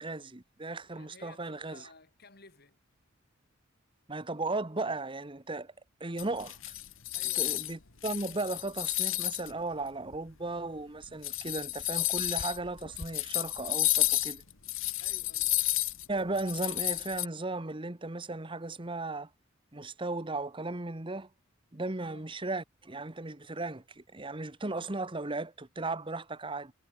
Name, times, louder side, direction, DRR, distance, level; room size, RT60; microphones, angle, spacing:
voice 1, 0.0-1.9 4.1-5.7 6.0-6.7 7.3-14.4 16.1-19.3 19.7-21.3 21.7-26.7, right 2 dB, 25° right, 1.2 m, -36 dB
voice 2, 0.9-2.8 7.1-7.6 15.0-15.6 22.1-22.3, left 3 dB, 50° left, 6.7 m, -55 dB
sound 1, 6.2-7.7 8.0-9.5 10.1-10.2 11.0-17.3, left 17 dB, 70° left, 1.7 m, -31 dB
head